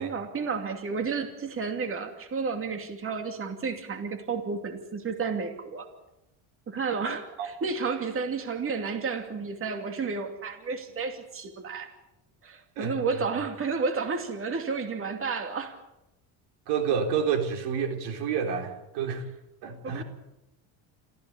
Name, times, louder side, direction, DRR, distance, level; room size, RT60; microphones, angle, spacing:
voice 1, 0.0-5.9 6.7-11.9 12.4-15.8 19.8-20.0, right 5 dB, 35° right, 6 dB, 2.6 m, -31 dB
voice 2, 16.7-19.3 19.6-20.0, right 7 dB, 80° right, 5 dB, 3.9 m, -29 dB
27.0 x 15.0 x 8.6 m, 0.93 s
cardioid pair, 120°, 40 cm